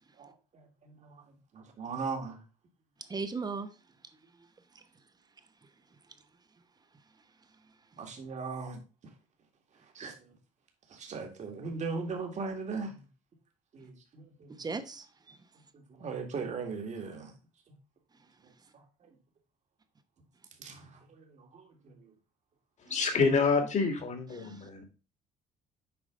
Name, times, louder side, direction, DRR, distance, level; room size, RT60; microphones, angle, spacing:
voice 1, 0.2-1.2 1.5-2.4 8.0-8.8 10.0-10.1 10.9-13.0 13.7-14.6 15.7-17.3 20.6-21.9, right 4 dB, 45° right, 2.0 m, -39 dB
voice 2, 3.1-3.7 4.7-4.8 14.5-15.4 22.9-23.0 24.4-24.7, right 4 dB, 25° right, 1.0 m, -38 dB
voice 3, 22.9-24.8, left 4 dB, 45° left, 2.0 m, -27 dB
7.8 x 5.0 x 3.8 m
cardioid pair, 110°, 17 cm